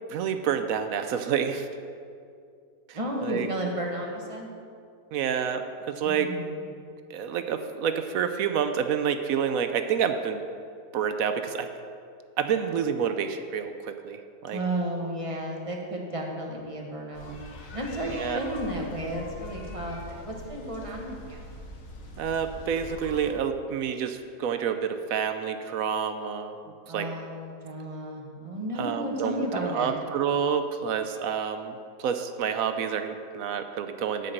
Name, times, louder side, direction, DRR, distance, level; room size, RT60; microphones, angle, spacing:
voice 1, 0.1-1.7 2.9-3.5 5.1-6.4 7.1-10.4 10.9-11.7 12.4-14.6 18.1-18.4 22.2-26.5 26.9-27.1 28.8-34.3, right 7 dB, 70° right, 8 dB, 0.9 m, -28 dB
voice 2, 2.9-4.5 6.0-6.6 14.5-17.3 17.7-21.4 26.9-29.9, right 1 dB, 20° right, -1 dB, 1.2 m, -33 dB
sound 1, 17.1-23.3, left 2 dB, 55° left, 1.5 m, -43 dB
9.7 x 5.3 x 7.7 m, 2.3 s
omnidirectional pair, 1.8 m